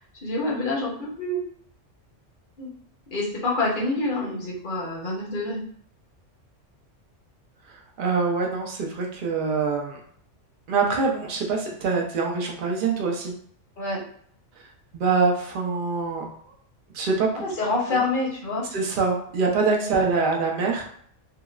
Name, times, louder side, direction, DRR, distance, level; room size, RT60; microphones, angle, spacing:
voice 1, 0.2-1.4 2.6-2.7 3.1-5.6 13.8-14.0 17.4-18.6 19.9-20.1, left 2 dB, 45° left, -4 dB, 1.0 m, -27 dB
voice 2, 8.0-10.0 10.7-13.3 14.9-16.3 16.9-17.3 17.9-18.0 18.7-20.8, right 4 dB, 55° right, 1 dB, 0.7 m, -24 dB
3.7 x 2.0 x 2.3 m, 0.62 s
omnidirectional pair, 1.3 m